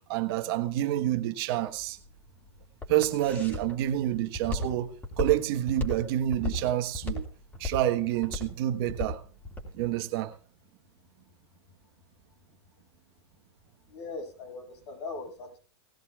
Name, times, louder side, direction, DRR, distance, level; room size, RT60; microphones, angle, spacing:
voice 1, 0.1-2.0 2.9-7.3 7.6-9.2 9.7-10.3, right 12 dB, 55° right, 1.3 m, -28 dB
Walk footsteps, 1.8-9.7, left 2 dB, 15° left, 3.8 m, -35 dB
voice 2, 13.9-15.6, left 3 dB, 75° left, 7.2 m, -40 dB
18.5 x 15.5 x 2.4 m
hypercardioid pair, 120°, 14 cm